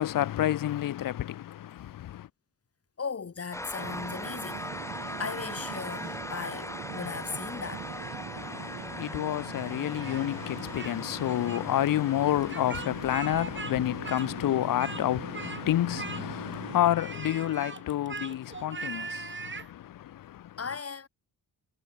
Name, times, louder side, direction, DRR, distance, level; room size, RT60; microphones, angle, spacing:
voice 1, 0.0-2.3 8.3-20.6, left 12 dB, 60° left, 0.5 m, -29 dB
voice 2, 3.0-4.7 5.2-7.9 20.6-21.1, left 5 dB, 35° left, 3.4 m, -37 dB
sound 1, 3.5-15.0, left 1 dB, 5° left, 1.7 m, -41 dB
sound 2, 3.8-16.8, right 8 dB, 65° right, 6.0 m, -43 dB
Speech, 10.0-11.0 11.2-11.6 12.4-13.7 14.0-15.0 15.3-15.6 15.9-16.5 16.9-19.7, right 4 dB, 30° right, 2.8 m, -40 dB
wide cardioid pair, 150°, 39 cm